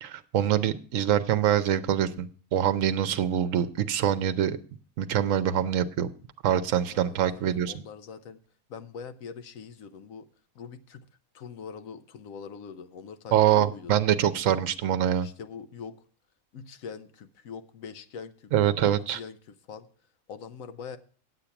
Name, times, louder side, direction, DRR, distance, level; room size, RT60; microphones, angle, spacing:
voice 1, 0.0-4.6 5.0-6.1 6.4-7.7 13.3-15.3 18.5-19.2, right 10 dB, 70° right, 1.0 m, -24 dB
voice 2, 6.9-8.4 8.7-10.3 10.5-11.0 11.3-14.0 15.2-16.0 16.5-19.9 20.3-21.0, left 6 dB, 75° left, 1.2 m, -43 dB
8.4 x 8.2 x 5.8 m
omnidirectional pair, 1.5 m